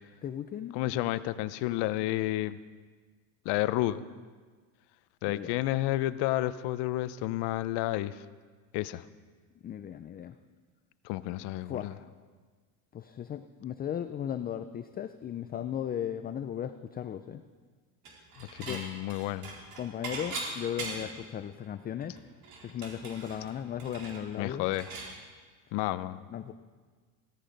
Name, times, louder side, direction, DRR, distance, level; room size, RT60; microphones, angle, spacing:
voice 1, 0.2-0.8 5.3-5.6 9.6-10.3 11.7-12.0 12.9-17.4 18.6-18.8 19.8-22.2 22.6-24.6 26.3-26.5, left 9 dB, 20° left, 9 dB, 0.4 m, -36 dB
voice 2, 0.7-2.6 3.4-4.0 5.2-8.2 8.7-9.0 11.0-11.9 18.4-19.5 24.4-24.9 25.7-26.2, left 16 dB, 65° left, 15 dB, 0.8 m, -31 dB
Dishes pots and pans / Chink clink, 18.0-18.8 19.1-21.2 21.6-21.7 22.0-25.1, right 3 dB, 55° right, 4.3 m, -40 dB
16.5 x 14.0 x 5.3 m, 1.5 s
supercardioid pair, 125°, 45 cm